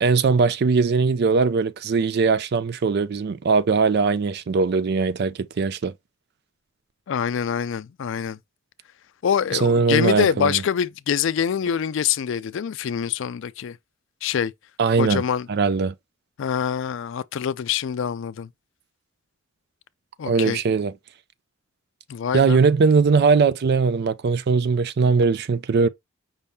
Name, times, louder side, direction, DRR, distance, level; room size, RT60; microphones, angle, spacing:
voice 1, 0.0-5.9 9.5-10.6 14.8-15.2 15.5-15.9 20.2-20.9 22.3-25.9, right 4 dB, 50° right, 0.4 m, -20 dB
voice 2, 7.1-8.4 9.2-13.8 14.2-14.5 15.0-15.5 16.4-18.5 20.2-20.6 22.1-22.6, left 8 dB, 65° left, 0.4 m, -25 dB
5.5 x 2.7 x 3.5 m
head